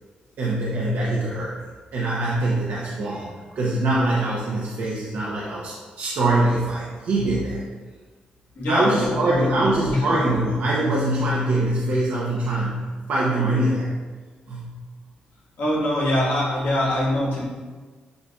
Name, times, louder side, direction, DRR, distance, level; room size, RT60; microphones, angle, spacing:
voice 1, 0.4-1.6 1.9-7.6 8.7-13.9 14.5-14.8, right 2 dB, 75° right, -6 dB, 0.8 m, -23 dB
voice 2, 8.6-10.0 15.6-17.4, left 1 dB, 75° left, -5 dB, 1.4 m, -23 dB
7.8 x 2.7 x 2.3 m, 1.4 s
cardioid pair, 80°, 3 cm